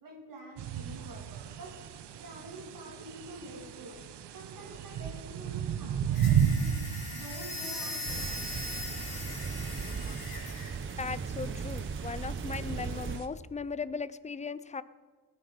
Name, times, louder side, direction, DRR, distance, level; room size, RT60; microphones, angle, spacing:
voice 1, 0.0-1.8 2.2-4.0 4.3-6.7 7.1-8.6, right 1 dB, 55° right, -1 dB, 3.0 m, -47 dB
sound 1, 0.6-13.3, right 8 dB, 85° right, 0.9 m, -35 dB
sound 2, 6.1-10.7, left 2 dB, 65° left, 4.4 m, -40 dB
sound 3, 8.0-13.2, right 5 dB, 30° right, 0.8 m, -37 dB
voice 2, 11.0-14.8, left 5 dB, 20° left, 17 dB, 0.4 m, -38 dB
18.5 x 9.9 x 5.1 m, 1.5 s
cardioid pair, 110°, 40 cm